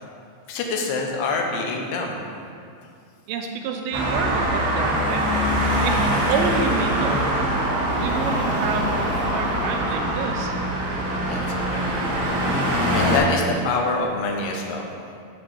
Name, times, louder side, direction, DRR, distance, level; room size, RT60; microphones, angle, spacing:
voice 1, 0.5-2.2 11.2-11.8 12.9-14.9, left 3 dB, 80° left, 1 dB, 2.3 m, -26 dB
voice 2, 3.3-5.3 5.5-7.4 8.0-8.9 9.3-10.6 11.0-11.1 12.2-12.5, right 5 dB, 90° right, 3 dB, 2.5 m, -29 dB
Traffic noise roadway noise, 3.9-13.2, equal, 50° right, 1.1 m, -23 dB
6.8 x 3.6 x 6.1 m, 2.3 s
omnidirectional pair, 4.3 m